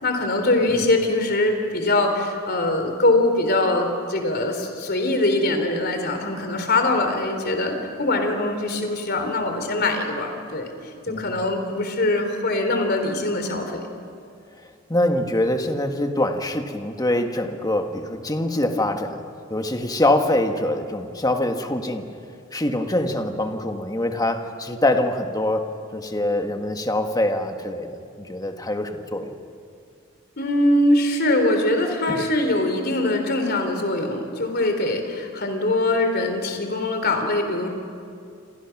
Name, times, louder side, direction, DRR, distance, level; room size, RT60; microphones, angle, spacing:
voice 1, 0.0-10.7 11.1-13.8 30.4-37.7, left 2 dB, 50° left, 5 dB, 3.7 m, -22 dB
voice 2, 14.9-19.2 19.5-22.1 22.5-29.4 32.1-32.2, left 1 dB, 20° left, 5 dB, 1.5 m, -24 dB
28.5 x 27.0 x 6.0 m, 2.4 s
head